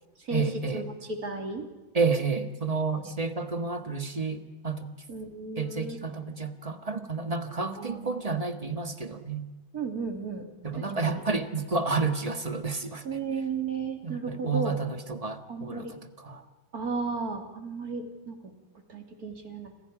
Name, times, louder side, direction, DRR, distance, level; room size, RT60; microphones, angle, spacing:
voice 1, 0.3-0.8 1.9-4.9 5.6-9.4 10.6-13.0 14.0-16.4, right 4 dB, 20° right, 8 dB, 1.4 m, -30 dB
voice 2, 1.2-1.7 3.0-3.1 5.1-6.0 7.8-8.2 9.7-11.1 13.0-14.9 15.5-15.9 16.7-18.4 18.9-19.7, right 4 dB, 45° right, 4 dB, 3.6 m, -34 dB
30.0 x 26.5 x 5.0 m, 1.1 s
omnidirectional pair, 2.2 m